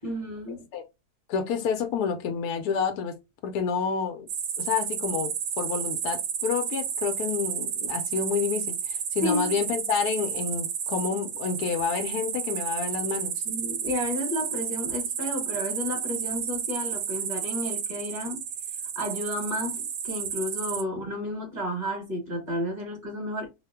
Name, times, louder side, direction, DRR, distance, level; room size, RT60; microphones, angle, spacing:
voice 1, 0.0-0.6 9.2-9.5 13.4-18.4 18.9-23.5, left 1 dB, 30° right, 1.3 m, -32 dB
voice 2, 1.3-3.2 3.4-4.3 4.6-13.4, left 6 dB, 80° left, 1.1 m, -29 dB
sound 1, 4.3-20.8, right 8 dB, 85° right, 1.2 m, -32 dB
2.8 x 2.0 x 3.3 m
omnidirectional pair, 1.7 m